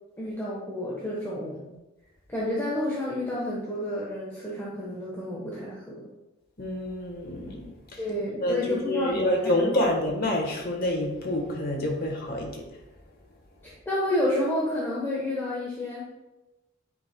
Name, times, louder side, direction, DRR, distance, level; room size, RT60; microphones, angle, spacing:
voice 1, 0.2-1.7 2.3-6.0 8.0-9.9 13.6-16.1, left 1 dB, 10° left, -6 dB, 1.1 m, -30 dB
voice 2, 6.6-8.0 8.4-12.7, left 1 dB, 50° left, 1 dB, 1.3 m, -27 dB
9.3 x 5.1 x 2.2 m, 1.0 s
head